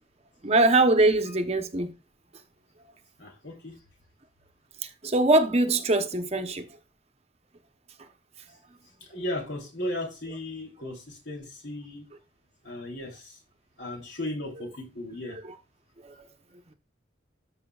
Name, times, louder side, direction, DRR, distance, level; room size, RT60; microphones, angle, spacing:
voice 1, 0.4-1.9 4.8-6.7 15.3-15.6 16.0-16.2, right 2 dB, 35° right, 0.9 m, -23 dB
voice 2, 3.2-3.8 9.1-12.0 12.6-13.4 13.8-15.4, left 1 dB, 70° left, 3.1 m, -36 dB
13.0 x 5.7 x 2.4 m
head